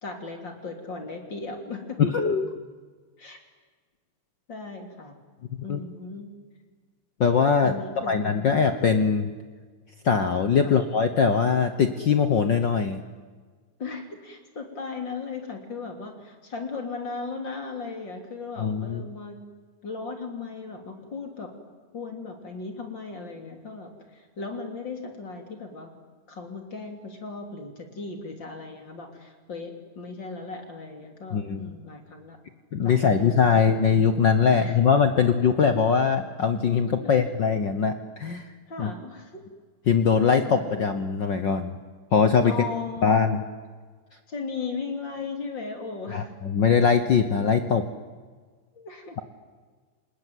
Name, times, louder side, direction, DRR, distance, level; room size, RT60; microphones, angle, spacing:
voice 1, 0.0-2.0 3.2-3.4 4.5-5.2 5.6-6.3 7.6-8.5 10.6-10.8 13.8-19.4 19.8-21.5 21.9-25.9 26.3-32.4 32.8-33.9 34.5-34.8 36.8-37.3 38.7-39.4 40.4-40.8 42.4-43.2 44.3-46.3 48.8-49.1, left 4 dB, 35° left, 4 dB, 3.6 m, -37 dB
voice 2, 2.0-2.5 5.7-5.8 7.2-7.7 8.1-9.3 10.0-13.0 18.6-19.0 31.3-31.7 32.7-38.5 38.8-38.9 39.9-41.7 42.1-42.5 43.0-43.4 46.1-47.9, left 6 dB, 65° left, 8 dB, 1.1 m, -22 dB
28.5 x 20.0 x 9.3 m, 1.5 s
omnidirectional pair, 3.7 m